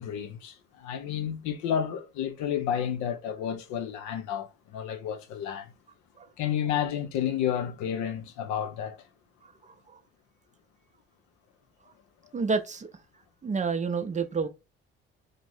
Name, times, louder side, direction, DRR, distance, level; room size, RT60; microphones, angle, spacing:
voice 1, 0.0-5.7 6.4-9.0, left 9 dB, 70° left, 0.6 m, -31 dB
voice 2, 12.3-12.9 13.4-14.5, right 5 dB, 25° right, 0.5 m, -29 dB
2.5 x 2.0 x 3.3 m
hypercardioid pair, 50°, 31 cm